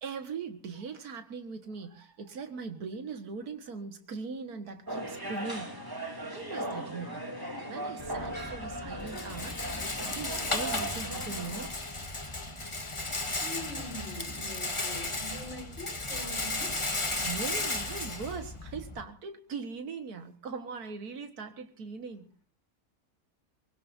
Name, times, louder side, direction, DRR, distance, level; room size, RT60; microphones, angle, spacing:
voice 1, 0.0-5.7 6.3-7.2 7.7-9.6 9.9-11.7 17.2-22.3, right 5 dB, 75° right, 2.1 m, -40 dB
sound 1, 4.9-11.7, right 1 dB, 15° right, 3.4 m, -38 dB
Rattle, 8.0-19.0, left 2 dB, 20° left, 1.5 m, -35 dB
voice 2, 13.4-16.7, equal, 50° left, 6.4 m, -43 dB
23.5 x 21.5 x 2.7 m
omnidirectional pair, 1.6 m